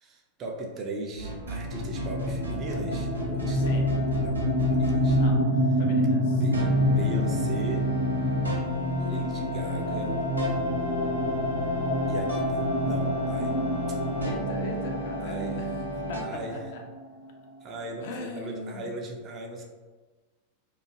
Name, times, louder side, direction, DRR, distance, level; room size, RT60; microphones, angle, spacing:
voice 1, 0.0-5.2 6.3-7.9 9.0-10.2 12.1-13.6 13.9-14.0 15.2-15.7 16.2-16.6 17.6-19.6, right 2 dB, 30° right, 1 dB, 0.4 m, -39 dB
sound 1, 1.2-5.4 6.5-16.2, right 1 dB, 80° right, 0.5 m, -33 dB
sound 2, 1.6-17.2, left 1 dB, 75° left, 0.7 m, -27 dB
voice 2, 3.5-3.9 5.2-5.5 5.8-6.4 14.2-15.7 16.1-16.8 18.0-18.9, left 2 dB, 50° left, 2 dB, 0.4 m, -39 dB
2.5 x 2.3 x 2.8 m, 1.3 s
figure-of-eight pair, 90°, 0 cm